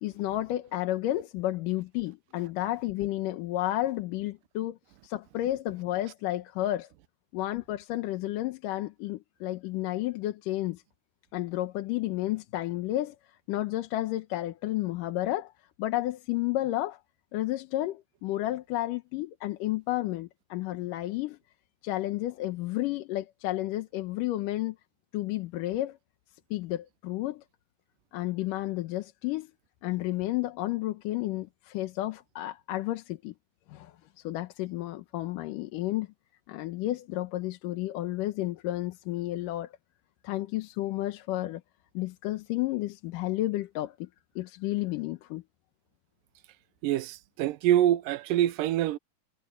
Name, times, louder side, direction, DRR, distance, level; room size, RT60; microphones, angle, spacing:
voice 1, 0.0-4.8 5.0-6.9 7.3-10.8 11.3-13.2 13.5-15.5 15.8-17.0 17.3-21.4 21.8-24.8 25.1-26.0 26.5-27.4 28.1-29.5 29.8-33.3 33.7-36.1 36.5-39.7 40.2-41.6 41.9-44.1 44.4-45.4, left 15 dB, 85° left, 2.5 m, -31 dB
voice 2, 46.8-49.0, right 12 dB, 90° right, 2.4 m, -25 dB
omnidirectional pair, 3.7 m